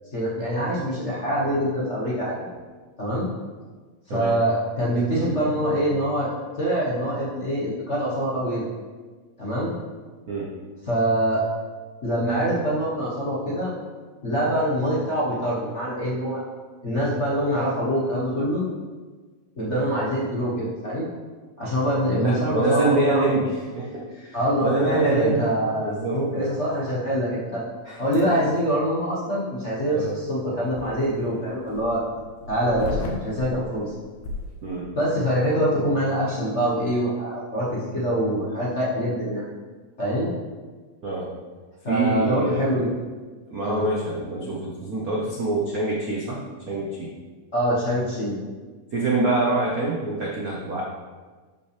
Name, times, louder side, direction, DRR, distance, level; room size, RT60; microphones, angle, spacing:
voice 1, 0.1-2.5 3.0-3.3 4.1-6.3 6.6-8.6 9.4-9.7 10.9-11.4 12.0-13.7 14.2-16.4 16.8-18.7 19.6-21.1 21.6-23.2 24.3-27.6 28.0-32.0 32.5-33.9 34.9-39.5 40.0-40.3 41.8-42.9 43.6-43.8 47.5-48.4, equal, 40° left, -6 dB, 1.1 m, -24 dB
voice 2, 22.1-25.5 25.8-26.2 27.9-28.0 28.2-28.3 29.9-30.1 34.6-34.9 41.0-41.3 41.9-42.6 43.5-46.4 46.7-47.1 48.9-50.8, right 2 dB, 80° right, -4 dB, 0.8 m, -25 dB
sound 1, 28.1-28.2 29.8-34.8, left 2 dB, 80° left, 2.5 m, -35 dB
12.0 x 5.5 x 3.4 m, 1.4 s
omnidirectional pair, 3.3 m